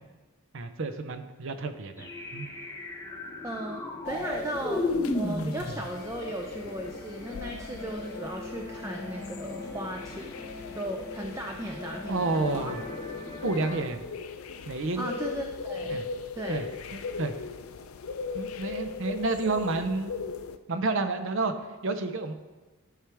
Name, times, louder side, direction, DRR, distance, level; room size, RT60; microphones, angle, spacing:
voice 1, 0.5-2.5 12.1-12.8 13.4-14.0 14.7-15.1 15.9-16.0 16.5-16.7 16.9-17.3 18.3-20.1 20.7-21.5 21.8-22.3, right 3 dB, 60° right, 8 dB, 0.6 m, -30 dB
sound 1, 2.0-13.9, left 2 dB, 15° left, 0.8 m, -36 dB
voice 2, 3.4-4.9 5.1-10.3 10.7-12.8 15.0-16.0 16.3-16.6, right 1 dB, 15° right, 2 dB, 0.4 m, -36 dB
sound 2, 4.0-20.6, left 4 dB, 75° left, 0.5 m, -39 dB
12.5 x 4.9 x 3.4 m, 1.2 s
head